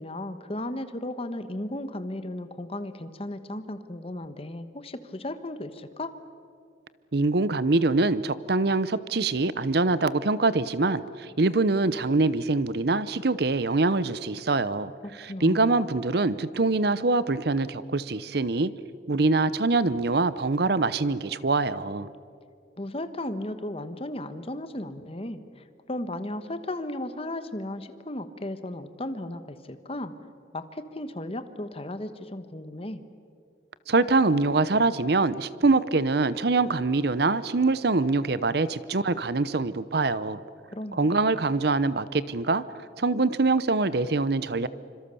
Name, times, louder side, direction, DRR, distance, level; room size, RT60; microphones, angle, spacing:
voice 1, 0.0-6.1 15.3-15.8 22.8-30.1 30.5-33.0 40.7-41.2, left 1 dB, 30° left, 10 dB, 1.3 m, -35 dB
voice 2, 7.1-14.9 15.2-18.7 19.1-22.1 33.9-40.4 40.9-42.6 43.0-44.7, right 3 dB, 60° right, 16 dB, 0.8 m, -24 dB
27.0 x 26.0 x 7.0 m, 2.4 s
head